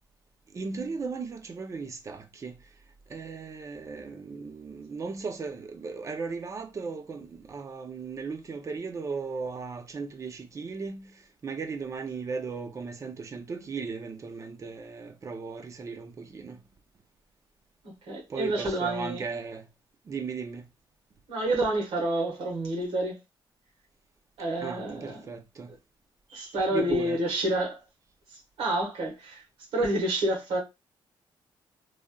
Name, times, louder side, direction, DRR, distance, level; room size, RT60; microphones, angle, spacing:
voice 1, 0.5-2.6 3.1-16.6 18.3-19.7 20.0-20.7 24.6-25.7 26.7-27.2, right 4 dB, 35° right, 0.5 m, -36 dB
voice 2, 18.1-19.2 21.3-23.2 24.4-25.2 26.3-27.8 28.6-29.4 29.7-30.6, right 1 dB, 85° right, 1.3 m, -28 dB
3.1 x 2.6 x 2.3 m
cardioid pair, 115°, 9 cm